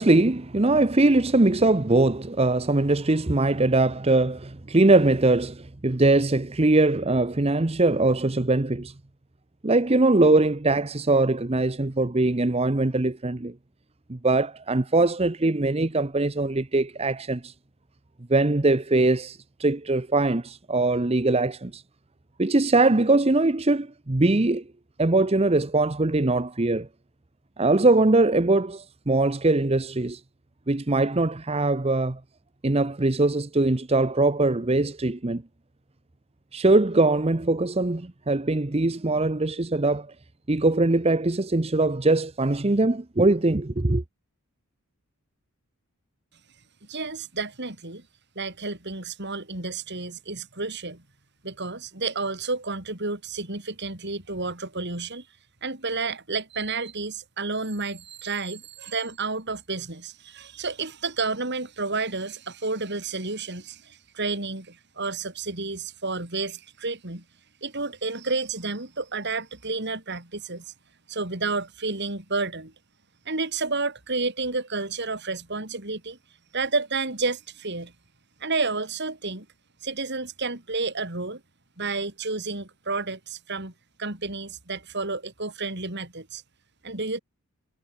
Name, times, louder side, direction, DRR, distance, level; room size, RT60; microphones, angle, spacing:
voice 1, 0.0-8.9 9.6-13.5 14.1-17.5 18.3-21.8 22.4-24.6 25.0-26.9 27.6-30.2 30.7-32.2 32.6-35.4 36.5-40.1 40.5-44.0, right 2 dB, 30° right, 0.8 m, -22 dB
voice 2, 46.9-48.0 48.4-51.0 51.4-55.2 55.6-67.2 67.6-70.7 71.1-72.7 73.3-76.2 76.5-77.9 78.4-79.5 79.8-81.4 81.8-83.7 84.0-86.4 86.8-87.2, right 3 dB, 50° right, 3.9 m, -30 dB
head